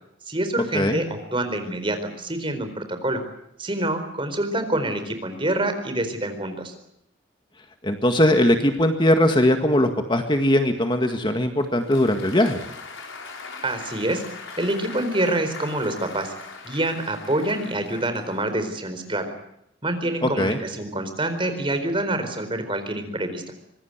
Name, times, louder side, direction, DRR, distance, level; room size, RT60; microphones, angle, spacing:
voice 1, 0.3-3.2 3.6-6.7 13.6-14.2 14.6-16.3 16.6-19.3 19.8-23.4, right 1 dB, 25° right, 8 dB, 4.3 m, -26 dB
voice 2, 7.8-12.6 20.2-20.6, left 1 dB, 25° left, 6 dB, 1.8 m, -20 dB
Applause, 11.6-18.7, left 4 dB, 85° left, 5.7 m, -40 dB
25.0 x 21.0 x 8.1 m, 0.77 s
head